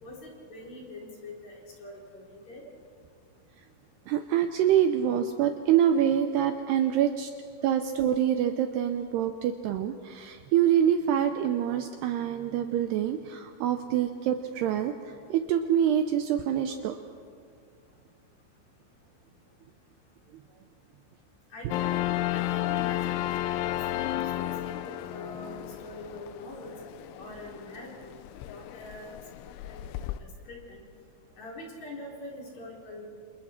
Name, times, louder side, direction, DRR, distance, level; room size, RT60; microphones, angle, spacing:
voice 1, 0.0-2.6 21.5-22.0 22.3-23.2 23.5-26.8 27.2-28.1 28.5-29.1 29.6-29.8 30.2-30.8 31.4-33.0, left 1 dB, 40° left, -3 dB, 4.7 m, -44 dB
voice 2, 4.1-7.3 7.6-17.0, right 10 dB, 80° right, 7 dB, 2.5 m, -26 dB
sound 1, 21.7-30.2, left 14 dB, 90° left, 3.1 m, -33 dB
29.0 x 28.5 x 4.4 m, 2.3 s
omnidirectional pair, 5.3 m